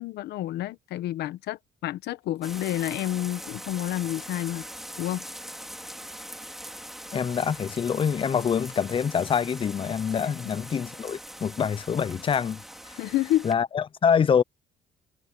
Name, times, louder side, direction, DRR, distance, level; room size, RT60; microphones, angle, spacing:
voice 1, 0.0-4.6 5.0-5.2 10.4-10.5 13.0-13.5, left 14 dB, 75° left, 1.2 m, -29 dB
sound 1, 2.4-13.5, equal, ahead, 2.8 m, -42 dB
voice 2, 7.1-12.9 13.4-14.4, left 7 dB, 30° left, 0.6 m, -25 dB
cardioid pair, 110°, 17 cm